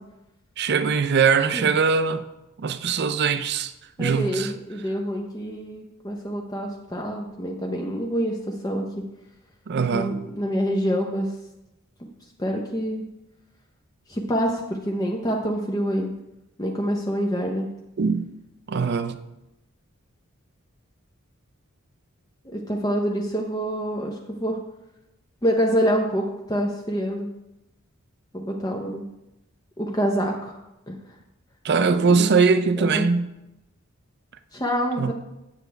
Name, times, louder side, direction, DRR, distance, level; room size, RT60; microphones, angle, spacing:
voice 1, 0.6-2.2 2.6-3.7 4.0-4.5 9.7-10.2 18.0-18.3 18.7-19.2 31.6-33.3 35.0-35.1, right 5 dB, 50° right, 0.5 m, -21 dB
voice 2, 4.0-8.9 9.9-11.3 12.4-13.0 14.1-16.1 16.6-17.7 22.4-24.6 25.4-27.3 28.3-29.0 29.8-30.6 30.9-31.0 32.0-32.3 32.8-33.1 34.5-35.1, equal, 15° left, 0.7 m, -26 dB
8.2 x 7.9 x 3.4 m
head